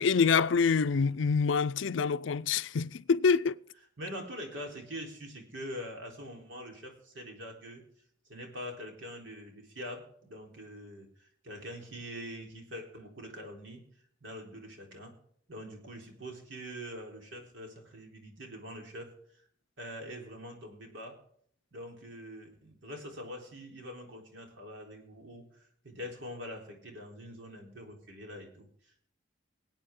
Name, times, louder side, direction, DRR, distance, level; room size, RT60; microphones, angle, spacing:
voice 1, 0.0-3.6, left 5 dB, 75° left, 0.5 m, -26 dB
voice 2, 4.0-7.8 8.3-13.8 14.2-15.1 15.5-19.5 19.8-21.2 21.7-29.1, equal, 80° right, 3.8 m, -44 dB
24.5 x 8.8 x 3.7 m
head